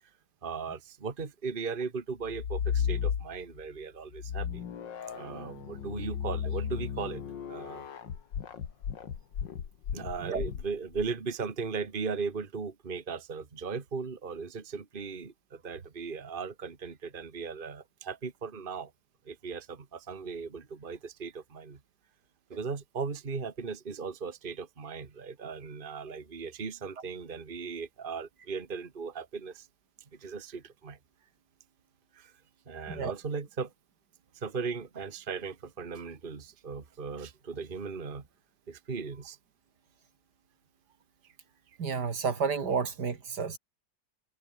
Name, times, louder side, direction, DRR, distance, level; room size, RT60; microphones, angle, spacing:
voice 1, 0.4-4.6 5.1-7.2 7.5-7.9 9.9-18.9 19.2-21.8 22.5-29.7 30.2-31.0 32.1-32.3 32.7-33.7 34.3-38.2 38.7-39.4, right 5 dB, 30° right, 1.8 m, -37 dB
sound 1, 2.2-3.6 4.1-11.1, left 8 dB, 90° left, 2.3 m, -34 dB
voice 2, 41.8-43.6, right 5 dB, 65° right, 2.7 m, -31 dB
omnidirectional pair, 1.9 m